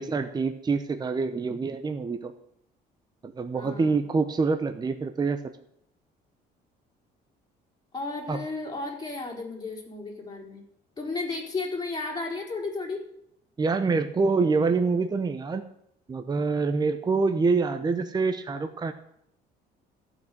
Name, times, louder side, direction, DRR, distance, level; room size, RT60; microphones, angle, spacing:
voice 1, 0.0-2.3 3.2-5.4 8.3-8.4 13.6-15.6 16.1-18.9, right 4 dB, 25° right, 8 dB, 0.9 m, -26 dB
voice 2, 3.5-4.0 7.9-10.6 11.0-13.0, left 3 dB, 25° left, -1 dB, 4.3 m, -33 dB
14.5 x 6.1 x 7.9 m, 0.75 s
cardioid pair, 110°, 17 cm